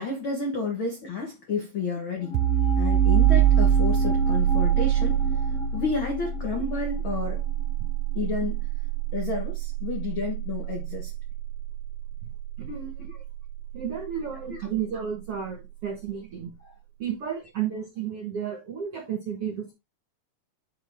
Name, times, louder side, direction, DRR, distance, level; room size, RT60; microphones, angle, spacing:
voice 1, 0.0-2.4 2.8-5.3 5.7-7.4 8.1-8.5 9.1-11.1 13.1-13.2 14.5-14.7 16.6-16.7, left 4 dB, 80° left, 1.1 m, -31 dB
sound 1, 2.2-8.8 9.0-9.1, equal, 40° left, 2.9 m, -34 dB
sound 2, 2.3-13.8, right 10 dB, 85° right, 2.6 m, -25 dB
voice 2, 12.6-13.1 13.7-16.5 17.0-19.7, right 8 dB, 60° right, 1.5 m, -32 dB
10.0 x 3.8 x 3.6 m
omnidirectional pair, 4.7 m